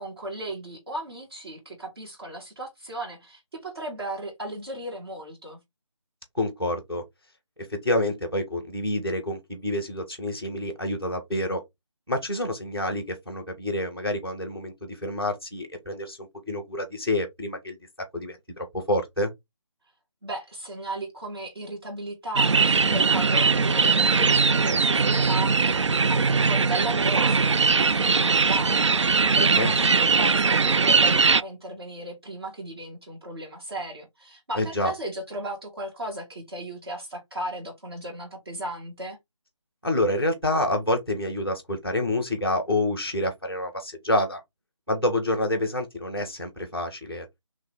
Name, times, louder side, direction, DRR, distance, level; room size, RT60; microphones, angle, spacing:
voice 1, 0.0-5.6 20.2-39.2, right 1 dB, 50° right, 2.2 m, -36 dB
voice 2, 6.3-7.0 7.7-11.6 12.1-16.2 16.5-17.8 18.1-19.3 29.2-29.7 34.5-34.9 39.8-44.4 44.9-47.2, left 1 dB, 5° right, 0.5 m, -28 dB
sound 1, 22.4-31.4, right 4 dB, 70° right, 0.4 m, -21 dB
3.7 x 3.1 x 4.5 m
figure-of-eight pair, 155°, 16 cm